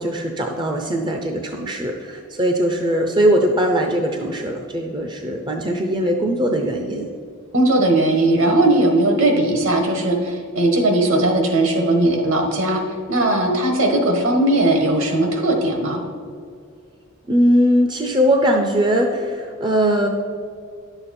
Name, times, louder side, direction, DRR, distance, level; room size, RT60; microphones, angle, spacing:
voice 1, 0.0-7.1 17.3-20.1, equal, 20° right, 3 dB, 0.5 m, -20 dB
voice 2, 7.5-12.8 13.1-16.0, right 1 dB, 65° right, 3 dB, 1.4 m, -18 dB
10.5 x 6.9 x 4.3 m, 2.2 s
head